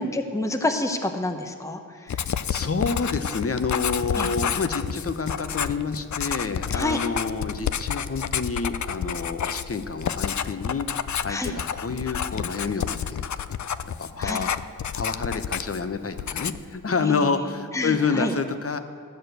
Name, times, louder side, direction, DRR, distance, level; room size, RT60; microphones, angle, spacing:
voice 1, 0.0-2.3 4.1-4.3 6.7-7.0 11.3-11.5 14.2-14.5 17.0-17.4 17.7-18.3, left 2 dB, 10° left, 5 dB, 0.8 m, -28 dB
Writing, 2.1-15.9 16.2-16.7, left 8 dB, 55° left, 0.4 m, -29 dB
voice 2, 2.5-10.9 11.2-13.3 14.0-14.6 14.9-18.8, left 4 dB, 40° left, 9 dB, 0.8 m, -28 dB
12.5 x 6.5 x 7.9 m, 2.3 s
wide cardioid pair, 65°, 35 cm